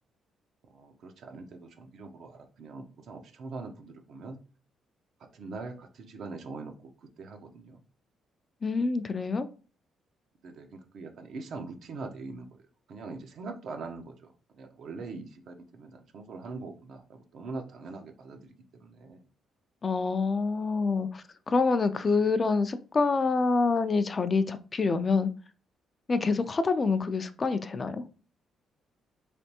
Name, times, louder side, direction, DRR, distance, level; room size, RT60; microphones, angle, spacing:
voice 1, 0.7-4.4 5.3-6.7 7.2-7.8 10.4-12.5 12.9-14.3 14.5-18.5 18.8-19.2 26.2-26.3, right 3 dB, 65° right, 0.5 m, -42 dB
voice 2, 8.6-9.5 19.8-25.3 26.1-28.0, left 4 dB, 35° left, 0.3 m, -26 dB
3.3 x 2.5 x 2.8 m
cardioid pair, 90°, 0 cm